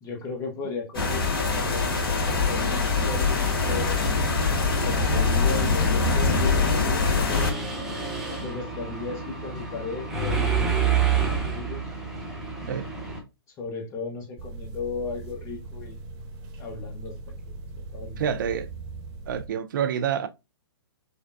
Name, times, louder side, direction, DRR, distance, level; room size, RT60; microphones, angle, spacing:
voice 1, 0.0-4.0 4.7-7.0 7.3-7.5 8.4-11.9 13.6-16.0 16.6-17.1 17.4-17.6 17.9-18.2, left 4 dB, 25° left, 1.0 m, -36 dB
sound 1, 0.9-7.5, left 3 dB, 60° left, 1.5 m, -23 dB
Mechanisms, 7.3-13.2, right 6 dB, 5° right, 1.0 m, -28 dB
sound 2, 14.4-19.5, right 3 dB, 30° right, 1.1 m, -40 dB
voice 2, 18.2-18.7 19.3-20.3, right 8 dB, 55° right, 0.5 m, -27 dB
5.2 x 2.2 x 2.5 m
figure-of-eight pair, 120°, 13 cm